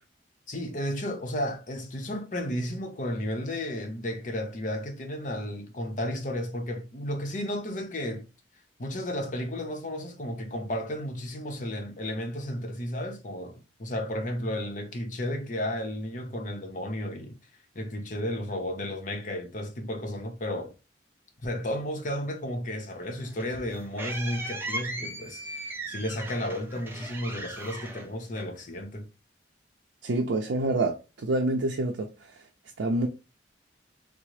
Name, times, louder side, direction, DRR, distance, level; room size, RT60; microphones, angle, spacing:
voice 1, 0.5-8.2 8.8-17.4 17.7-20.7 21.4-29.1, left 1 dB, 45° left, 0.7 m, -33 dB
sound 1, 23.0-28.8, right 2 dB, 10° right, 0.4 m, -38 dB
voice 2, 30.0-32.1 32.8-33.1, right 2 dB, 85° right, 0.5 m, -27 dB
3.7 x 2.0 x 3.0 m
head